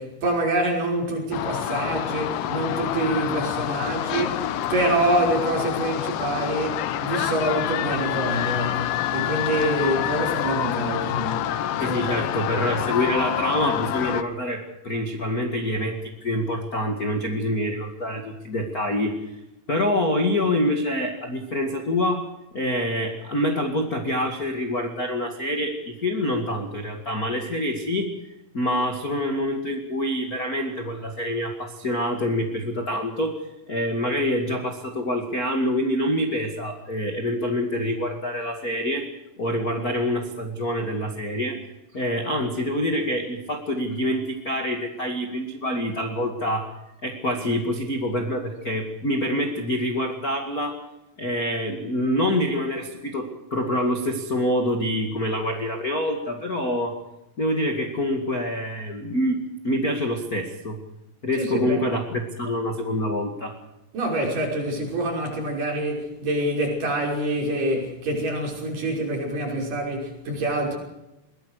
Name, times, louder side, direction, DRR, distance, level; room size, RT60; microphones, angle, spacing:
voice 1, 0.0-11.5 11.9-12.1 61.4-61.8 63.9-70.8, right 1 dB, 45° right, 7.0 m, -26 dB
sound 1, 1.3-14.2, left 11 dB, 85° left, 1.9 m, -27 dB
voice 2, 11.8-19.1 19.7-22.2 22.5-28.1 28.5-33.4 33.7-39.1 39.4-41.6 41.9-46.7 47.0-50.8 51.2-56.9 57.4-60.8 61.2-63.6, left 1 dB, 40° left, 1.2 m, -26 dB
22.5 x 19.5 x 6.5 m
omnidirectional pair, 5.3 m